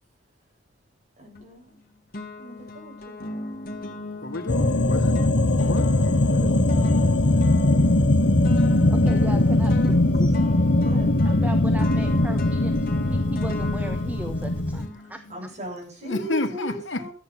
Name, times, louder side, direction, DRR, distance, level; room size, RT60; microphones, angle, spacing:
voice 1, 1.2-1.7 2.4-3.2 6.3-7.6 8.0-10.3 10.8-11.3 15.0-17.1, equal, 40° right, 7.3 m, -39 dB
sound 1, 1.3-1.8 2.1-15.5, left 2 dB, 50° left, 2.0 m, -39 dB
voice 2, 4.2-5.2 5.5-5.9 16.0-17.1, left 2 dB, 90° left, 1.8 m, -30 dB
sound 2, 4.5-14.9, left 1 dB, 65° left, 1.2 m, -20 dB
voice 3, 8.9-10.3 11.2-15.2, equal, 10° right, 1.1 m, -37 dB
13.5 x 8.9 x 5.8 m
head